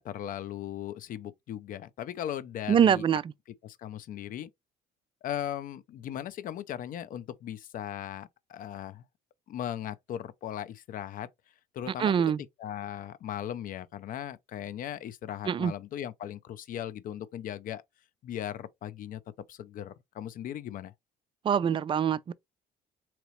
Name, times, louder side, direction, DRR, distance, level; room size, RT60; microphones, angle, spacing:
voice 1, 0.0-3.0 3.6-4.5 5.2-9.0 9.5-11.3 11.7-12.1 12.6-17.8 18.2-19.2 19.5-20.9, left 10 dB, 55° left, 0.5 m, -38 dB
voice 2, 2.7-3.2 12.0-12.4 15.4-15.7 21.4-22.3, right 8 dB, 30° right, 0.3 m, -24 dB
4.0 x 2.9 x 3.0 m
cardioid pair, 110°, 17 cm